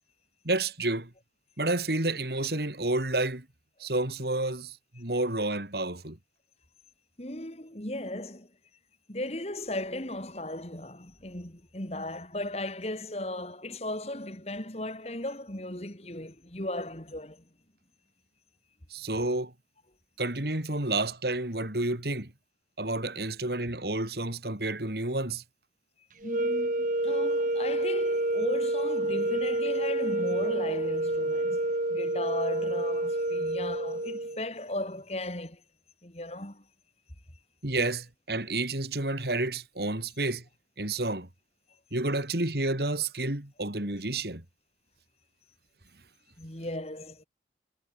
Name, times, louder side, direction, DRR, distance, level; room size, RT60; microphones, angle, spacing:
voice 1, 0.4-1.1 1.6-3.4 3.8-6.2 18.9-19.5 20.2-22.3 22.8-25.4 37.6-40.4 40.8-41.3 41.9-44.4, right 2 dB, 65° right, 3.1 m, -30 dB
voice 2, 7.2-8.5 9.1-17.4 26.2-31.6 31.9-35.6 36.0-36.6 46.4-47.2, left 1 dB, 35° left, 3.2 m, -36 dB
sound 1, 26.2-34.4, right 1 dB, 45° right, 1.4 m, -28 dB
head